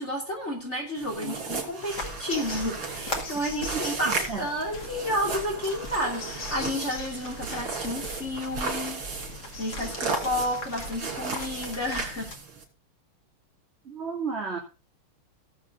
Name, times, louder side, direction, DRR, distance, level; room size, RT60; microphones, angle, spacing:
voice 1, 0.0-9.0 9.6-12.3, equal, 30° left, -1 dB, 3.2 m, -31 dB
sound 1, 1.0-12.6, right 4 dB, 75° right, 3.8 m, -35 dB
voice 2, 1.1-1.4 3.7-4.4 13.8-14.6, right 5 dB, 30° right, -2 dB, 2.7 m, -34 dB
sound 2, 1.9-12.4, left 2 dB, 50° left, 2.6 m, -39 dB
18.0 x 7.3 x 3.8 m, 0.32 s
omnidirectional pair, 2.4 m